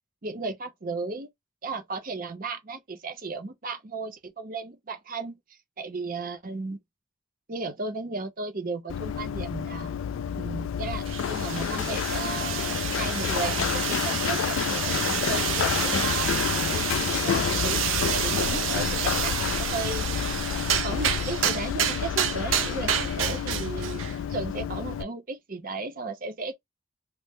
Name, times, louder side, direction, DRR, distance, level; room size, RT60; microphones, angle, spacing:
voice 1, 0.2-1.3 1.6-5.4 5.8-6.8 7.5-9.9 10.3-17.8 18.1-20.1 20.8-26.5, right 3 dB, 45° right, 0.7 m, -35 dB
Run, 8.9-25.0, left 8 dB, 85° left, 0.3 m, -29 dB
sound 1, 11.1-24.2, right 9 dB, 90° right, 0.6 m, -29 dB
3.0 x 2.1 x 3.5 m
head